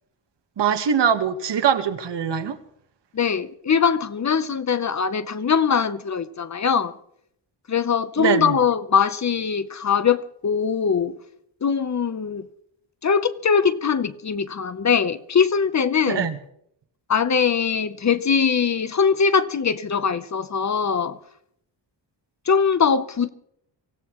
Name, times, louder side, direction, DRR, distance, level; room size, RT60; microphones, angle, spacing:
voice 1, 0.6-2.6 8.2-8.6 16.1-16.4, right 7 dB, 70° right, 1.5 m, -22 dB
voice 2, 3.1-6.9 7.7-11.2 11.6-12.5 13.0-16.3 17.1-21.2 22.5-23.3, left 6 dB, 40° left, 0.8 m, -21 dB
24.5 x 16.0 x 3.1 m
wide cardioid pair, 125°, 44 cm